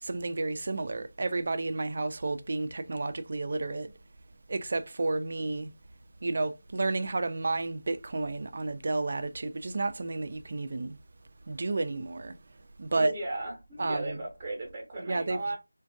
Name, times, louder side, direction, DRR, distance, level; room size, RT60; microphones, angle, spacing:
voice 1, 0.0-3.9 4.5-5.7 6.2-11.0 11.5-12.4 12.8-13.1 13.8-14.2 15.0-15.4, right 3 dB, 45° right, 0.3 m, -31 dB
voice 2, 12.9-15.6, right 2 dB, 15° right, 0.7 m, -36 dB
2.4 x 2.2 x 2.5 m
figure-of-eight pair, 170°, 0 cm